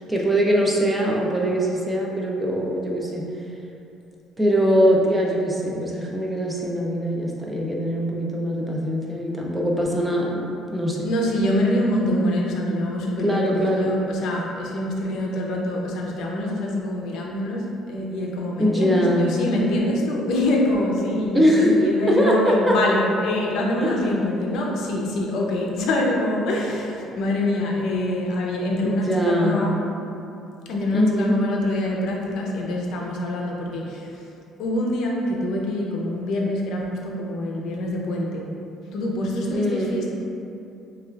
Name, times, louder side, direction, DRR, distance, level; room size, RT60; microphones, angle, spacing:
voice 1, 0.0-3.2 4.4-11.0 12.2-12.4 13.2-13.9 18.6-19.4 21.3-21.8 22.1-22.8 23.8-24.1 28.8-29.7 30.9-31.4 39.5-40.0, equal, 10° right, -2 dB, 0.3 m, -22 dB
voice 2, 11.0-29.7 30.7-34.1 34.6-38.5 38.9-40.1, left 1 dB, 55° left, -1 dB, 0.5 m, -25 dB
6.1 x 2.3 x 2.3 m, 2.7 s
cardioid pair, 170°, 0 cm